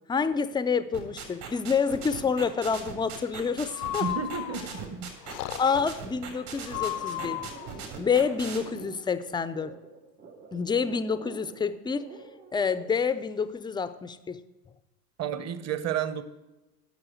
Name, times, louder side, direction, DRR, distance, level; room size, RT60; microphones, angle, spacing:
voice 1, 0.1-4.1 5.6-7.4 8.0-9.7 10.5-12.1 12.5-14.4, left 5 dB, 10° left, 13 dB, 0.4 m, -28 dB
sound 1, 0.9-8.6, right 7 dB, 65° right, 3.4 m, -39 dB
Breathing, 3.7-4.8 5.3-6.0 6.7-7.7, left 14 dB, 75° left, 0.6 m, -34 dB
voice 2, 4.0-5.1 15.2-16.2, right 7 dB, 35° right, 12 dB, 1.0 m, -31 dB
sound 2, 5.2-12.8, right 4 dB, 85° right, 3.1 m, -48 dB
11.0 x 6.2 x 7.6 m, 1.0 s
hypercardioid pair, 75°, 47 cm